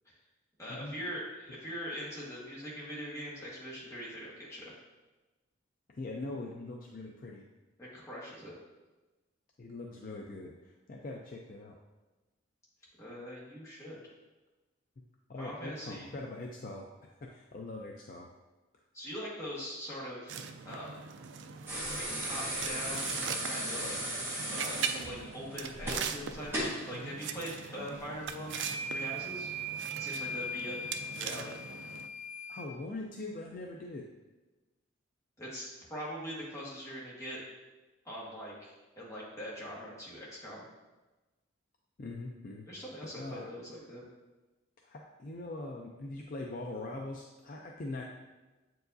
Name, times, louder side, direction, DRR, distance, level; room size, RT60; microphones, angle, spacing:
voice 1, 0.6-4.7 7.8-8.6 13.0-14.0 15.4-16.1 18.9-20.4 20.6-21.1 21.6-24.0 24.5-24.8 25.1-26.5 26.9-28.6 28.9-29.5 30.0-30.8 31.1-31.5 35.4-37.4 38.0-40.6 42.7-44.0, equal, 15° left, -6 dB, 1.4 m, -42 dB
voice 2, 6.0-7.4 9.6-11.7 15.3-16.8 17.2-18.3 32.5-34.0 42.0-42.7 43.0-43.5 44.8-48.0, left 2 dB, 45° left, 0 dB, 0.4 m, -42 dB
sound 1, 20.3-32.1, right 7 dB, 60° right, 0.3 m, -41 dB
sound 2, 21.7-26.8 28.2-28.3, right 1 dB, 10° right, 1.4 m, -36 dB
sound 3, 28.4-32.7, right 1 dB, 85° right, 1.6 m, -39 dB
7.6 x 4.7 x 2.6 m, 1.1 s
head